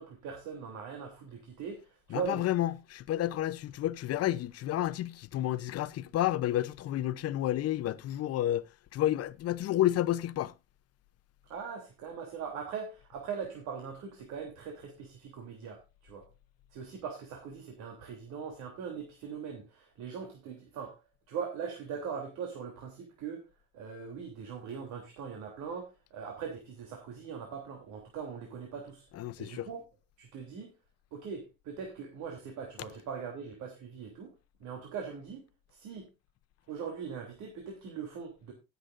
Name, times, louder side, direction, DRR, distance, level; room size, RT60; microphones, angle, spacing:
voice 1, 0.0-2.5 11.5-16.2 16.7-21.0 21.3-23.4 23.7-29.0 29.4-29.8 30.2-30.7 31.1-34.3 34.6-35.4 35.7-36.1 36.7-38.5, right 6 dB, 75° right, 3.3 m, -41 dB
voice 2, 2.1-10.5 29.1-29.7, left 13 dB, 55° left, 0.8 m, -30 dB
18.5 x 8.1 x 2.6 m
cardioid pair, 110°, 29 cm